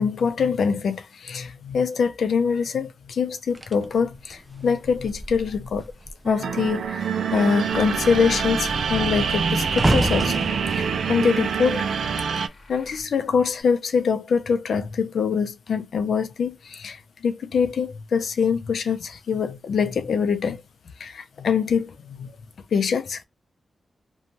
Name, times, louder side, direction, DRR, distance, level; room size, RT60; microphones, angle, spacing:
voice 1, 0.0-5.8 6.2-7.0 7.3-10.3 10.7-11.9 12.4-20.6 21.0-22.3 22.7-23.2, left 6 dB, 85° left, 0.4 m, -24 dB
sound 1, 3.6-6.3 6.6-6.9 7.3-12.6 13.3-13.6, right 1 dB, 15° right, 0.4 m, -30 dB
sound 2, 6.2-12.5, right 6 dB, 90° right, 0.3 m, -25 dB
sound 3, 7.7-13.0, left 2 dB, 55° left, 0.8 m, -40 dB
2.6 x 2.2 x 2.9 m
wide cardioid pair, 130°, 0 cm